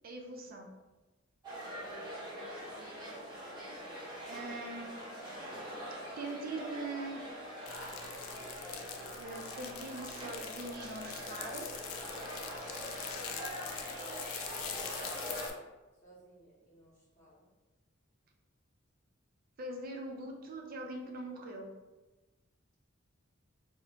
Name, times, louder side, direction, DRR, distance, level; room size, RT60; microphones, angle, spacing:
voice 1, 0.0-0.7 4.3-4.9 6.2-7.2 8.8-11.7 19.6-21.7, right 2 dB, 45° right, 1 dB, 0.4 m, -42 dB
sound 1, 1.4-15.5, equal, 20° right, 0.8 m, -43 dB
voice 2, 1.5-3.3 13.2-13.6 14.6-15.4 16.0-17.5, equal, 40° left, -8 dB, 0.9 m, -59 dB
sound 2, 7.7-15.5, left 7 dB, 80° left, 0.3 m, -44 dB
2.6 x 2.0 x 2.8 m, 1.2 s
head